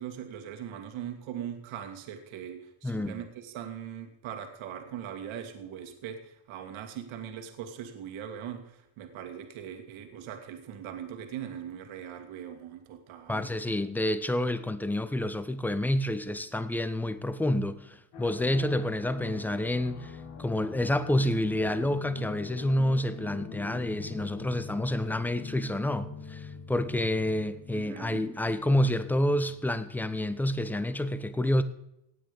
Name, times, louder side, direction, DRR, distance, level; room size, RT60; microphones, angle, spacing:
voice 1, 0.0-13.5 27.7-28.2, right 9 dB, 65° right, 2.4 m, -40 dB
voice 2, 2.8-3.2 13.3-31.6, left 1 dB, 5° left, 0.8 m, -28 dB
sound 1, 18.1-30.2, left 6 dB, 50° left, 3.2 m, -44 dB
17.0 x 9.0 x 5.2 m
cardioid pair, 125°, 50 cm